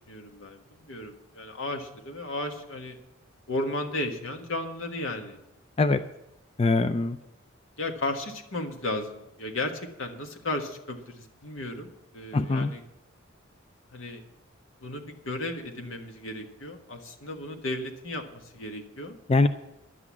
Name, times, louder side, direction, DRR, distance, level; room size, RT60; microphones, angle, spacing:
voice 1, 0.1-3.0 3.5-5.4 7.8-12.8 13.9-14.2 14.8-19.2, left 2 dB, 80° left, 4 dB, 1.6 m, -34 dB
voice 2, 6.6-7.2 12.3-12.7 19.3-19.5, left 3 dB, 30° left, 10 dB, 0.4 m, -22 dB
11.0 x 8.4 x 7.2 m, 0.90 s
head